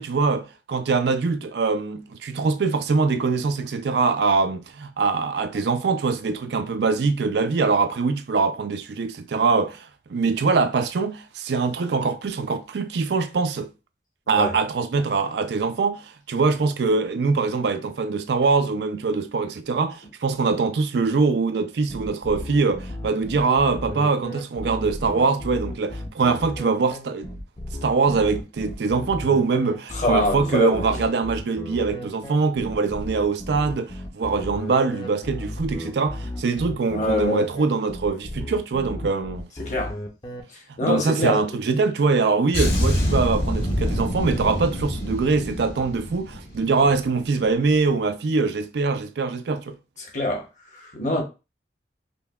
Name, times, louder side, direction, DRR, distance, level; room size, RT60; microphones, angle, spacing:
voice 1, 0.0-13.7 14.3-27.3 27.8-39.5 40.8-49.8, right 4 dB, 70° right, 0.4 m, -23 dB
sound 1, 21.9-40.4, left 1 dB, 25° left, 0.6 m, -34 dB
voice 2, 29.9-30.9 36.9-37.5 39.6-39.9 40.8-41.4 50.0-51.2, left 1 dB, 45° left, 1.0 m, -25 dB
sound 2, 42.5-47.1 47.4-47.6, equal, 85° left, 1.9 m, -26 dB
5.1 x 2.3 x 2.3 m
head